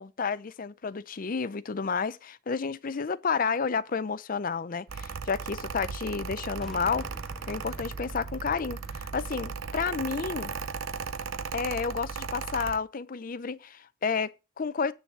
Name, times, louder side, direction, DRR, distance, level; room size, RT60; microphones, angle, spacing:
voice 1, 0.0-7.1 7.5-10.6 11.5-14.9, left 5 dB, 45° left, 0.5 m, -31 dB
Mechanical fan, 4.9-12.8, right 5 dB, 80° right, 0.6 m, -37 dB
sound 1, 6.6-11.0, equal, ahead, 0.5 m, -48 dB
9.5 x 4.0 x 7.3 m
head